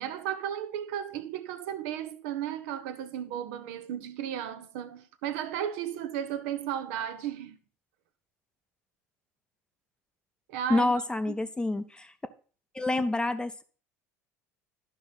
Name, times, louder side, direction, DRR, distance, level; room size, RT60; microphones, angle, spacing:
voice 1, 0.0-7.6 10.5-10.9 11.3-11.4, right 10 dB, 60° right, 0.7 m, -34 dB
voice 2, 10.7-12.1 12.7-13.6, left 2 dB, 10° left, 0.6 m, -28 dB
12.0 x 5.2 x 4.1 m
figure-of-eight pair, 70°, 9 cm